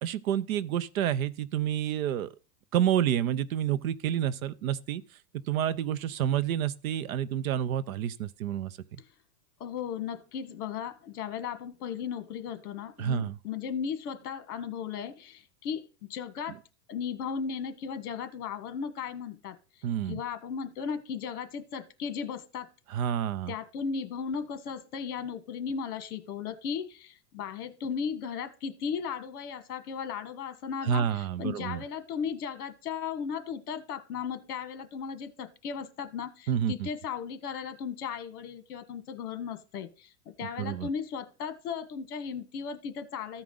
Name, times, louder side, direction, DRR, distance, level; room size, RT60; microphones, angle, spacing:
voice 1, 0.0-2.3 2.7-5.0 5.5-8.7 13.0-13.4 19.8-20.2 22.9-23.5 30.8-31.8 36.5-36.9 40.6-40.9, right 10 dB, 55° right, 0.7 m, -29 dB
voice 2, 9.6-16.6 16.9-19.6 20.0-22.7 23.5-43.4, left 7 dB, 65° left, 1.5 m, -36 dB
14.5 x 4.9 x 3.8 m
supercardioid pair, 170°, 49 cm